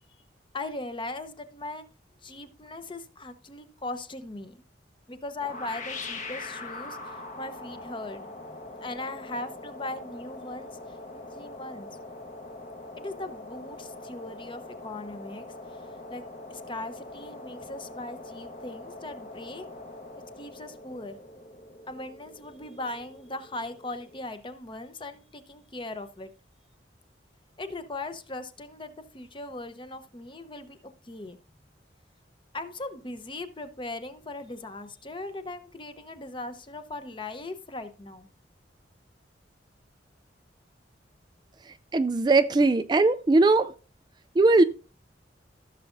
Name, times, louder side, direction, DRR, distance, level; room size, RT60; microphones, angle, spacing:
voice 1, 0.5-1.8 2.2-4.6 5.1-10.7 11.1-11.9 13.0-15.5 16.1-16.2 16.5-19.6 20.4-21.2 21.9-26.3 27.6-30.8 31.0-31.4 32.5-38.3, left 2 dB, 25° left, 0.8 m, -39 dB
sound 1, 5.4-24.2, left 2 dB, 45° left, 1.3 m, -43 dB
voice 2, 41.9-43.7 44.4-44.6, right 3 dB, 25° right, 0.3 m, -20 dB
15.5 x 7.1 x 2.6 m
head